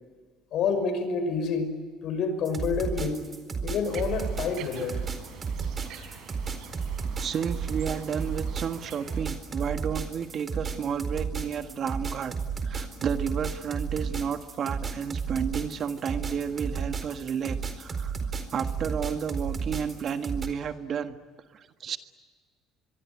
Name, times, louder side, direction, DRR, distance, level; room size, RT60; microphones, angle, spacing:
voice 1, 0.5-1.7 2.0-3.3 3.6-5.0, left 5 dB, 60° left, 9 dB, 6.0 m, -28 dB
sound 1, 2.4-20.5, right 5 dB, 30° right, 4.3 m, -33 dB
sound 2, 3.8-9.2, right 7 dB, 65° right, 5.1 m, -46 dB
voice 2, 7.2-12.3 12.6-18.1 18.5-21.2 21.5-22.0, right 7 dB, 50° right, 8 dB, 1.7 m, -32 dB
25.0 x 23.0 x 9.9 m, 1.5 s
supercardioid pair, 95°, 0 cm